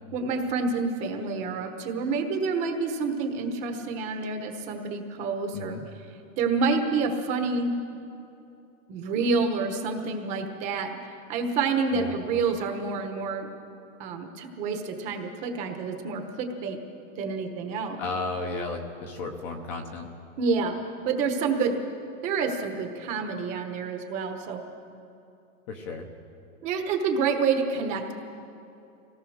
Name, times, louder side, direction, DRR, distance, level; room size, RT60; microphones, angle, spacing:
voice 1, 0.1-5.8 6.4-7.7 8.9-10.9 11.3-13.5 14.0-16.8 17.2-18.0 20.4-20.8 21.0-21.7 22.2-24.6 26.6-28.1, right 4 dB, 15° right, 5 dB, 1.1 m, -28 dB
voice 2, 5.5-5.9 11.9-12.1 18.0-20.1 25.7-26.1, left 3 dB, 20° left, 3 dB, 0.9 m, -34 dB
25.0 x 18.0 x 6.4 m, 2.7 s
supercardioid pair, 175°, 42 cm